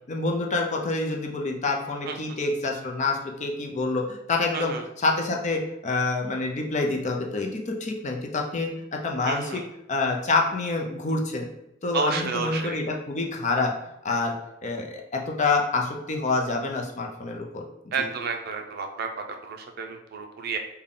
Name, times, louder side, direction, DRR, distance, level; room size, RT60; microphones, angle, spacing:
voice 1, 0.1-4.7 5.0-9.6 9.9-11.5 11.8-13.7 14.0-14.4 14.6-17.6 18.0-18.1, left 3 dB, 40° left, 1 dB, 0.5 m, -27 dB
voice 2, 4.5-4.8 9.3-9.7 11.9-12.8 17.9-20.6, right 4 dB, 55° right, 4 dB, 0.4 m, -31 dB
3.6 x 2.2 x 3.7 m, 0.84 s
head